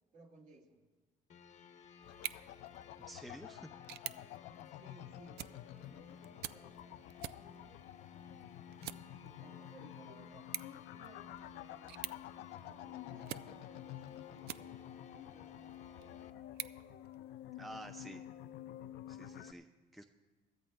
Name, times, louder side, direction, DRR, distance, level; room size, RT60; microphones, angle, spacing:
voice 1, 0.1-0.8 4.8-7.9 9.2-10.5 10.9-14.8 15.1-16.2, right 2 dB, 50° right, 0 dB, 2.0 m, -61 dB
sound 1, 1.3-16.3, left 6 dB, 45° left, 0.9 m, -58 dB
sound 2, 2.0-19.5, left 12 dB, 80° left, 0.4 m, -50 dB
sound 3, 2.1-15.1 15.6-17.6, right 13 dB, 70° right, 0.4 m, -50 dB
voice 2, 3.1-3.7 17.6-18.2 19.1-20.0, right 1 dB, ahead, 6 dB, 0.5 m, -50 dB
22.5 x 14.0 x 2.2 m, 1.3 s
cardioid pair, 110°, 17 cm